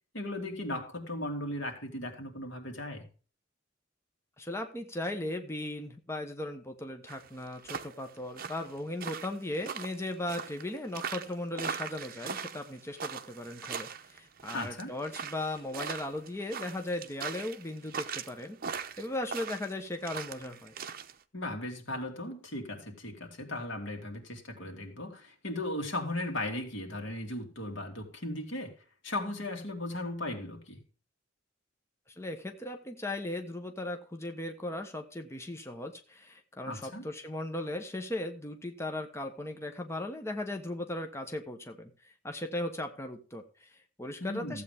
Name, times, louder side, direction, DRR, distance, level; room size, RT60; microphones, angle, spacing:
voice 1, 0.1-3.1 14.5-14.9 21.3-28.7 29.0-30.8 36.7-37.0 44.2-44.6, left 1 dB, 80° left, 2 dB, 2.9 m, -37 dB
voice 2, 4.4-20.7 32.2-44.6, left 1 dB, 15° left, 4 dB, 1.1 m, -37 dB
sound 1, 7.1-21.1, right 6 dB, 50° right, 0.8 m, -40 dB
15.0 x 8.3 x 3.6 m, 0.36 s
head